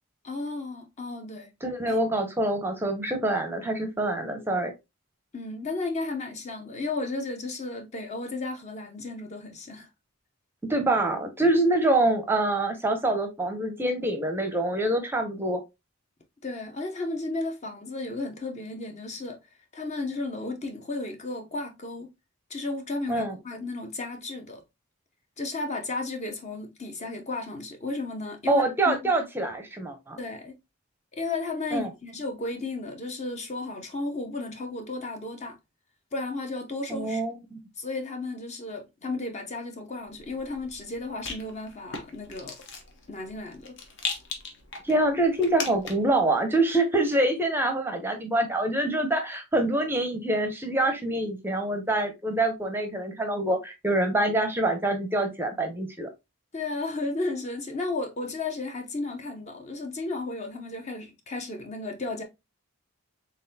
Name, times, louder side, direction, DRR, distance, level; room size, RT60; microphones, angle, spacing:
voice 1, 0.2-1.5 1.9-2.1 5.3-9.9 16.4-19.4 19.7-22.1 22.5-24.6 25.4-29.1 30.2-30.6 31.1-35.6 36.1-37.2 37.8-42.5 43.1-43.8 56.5-62.2, left 2 dB, 30° left, 0.6 m, -34 dB
voice 2, 1.6-4.7 10.7-15.6 23.1-23.4 28.5-30.2 31.7-31.9 36.9-37.6 44.8-56.1, right 1 dB, 10° right, 0.6 m, -25 dB
Rattle, 40.1-46.2, left 4 dB, 55° left, 0.9 m, -39 dB
3.9 x 3.7 x 2.7 m
head